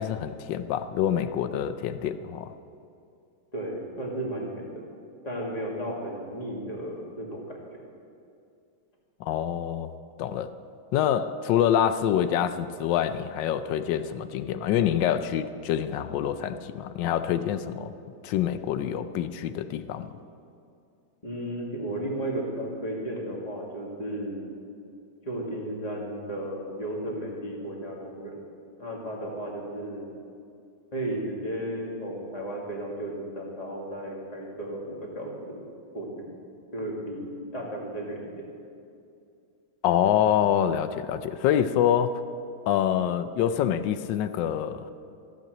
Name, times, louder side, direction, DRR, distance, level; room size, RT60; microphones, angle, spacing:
voice 1, 0.0-2.5 9.2-9.9 10.2-10.5 10.9-17.9 18.2-20.1 39.8-42.2 42.7-44.9, left 10 dB, 75° left, 12 dB, 1.1 m, -26 dB
voice 2, 3.5-4.7 5.2-7.6 21.2-24.5 25.3-28.4 28.8-30.1 30.9-35.6 35.9-36.3 36.7-38.3, right 1 dB, 20° left, -2 dB, 1.9 m, -34 dB
15.0 x 6.0 x 7.8 m, 2.5 s
omnidirectional pair, 2.2 m